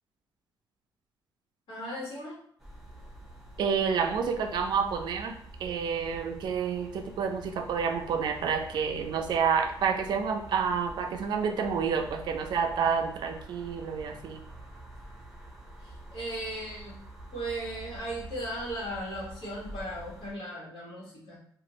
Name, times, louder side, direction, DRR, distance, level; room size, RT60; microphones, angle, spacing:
voice 1, 1.7-2.4 15.8-17.0 17.3-21.4, right 1 dB, 80° left, -5 dB, 1.4 m, -37 dB
sound 1, 2.6-20.3, right 1 dB, 5° right, 0.7 m, -47 dB
voice 2, 3.6-14.4, right 6 dB, 65° right, 5 dB, 0.4 m, -29 dB
2.5 x 2.4 x 2.9 m, 0.63 s
cardioid pair, 145°, 8 cm